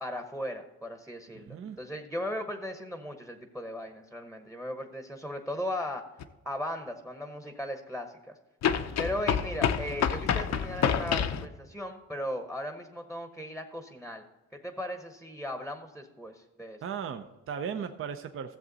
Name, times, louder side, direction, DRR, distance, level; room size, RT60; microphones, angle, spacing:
voice 1, 0.0-6.0 6.4-8.3 9.0-14.2 14.5-16.8, left 1 dB, ahead, 6 dB, 0.9 m, -37 dB
voice 2, 1.3-1.8 16.8-18.6, right 7 dB, 45° right, 7 dB, 0.6 m, -37 dB
sound 1, 6.2-6.3 8.6-11.5, left 8 dB, 60° left, 0.7 m, -28 dB
14.0 x 7.3 x 4.0 m, 1.1 s
cardioid pair, 90°, 30 cm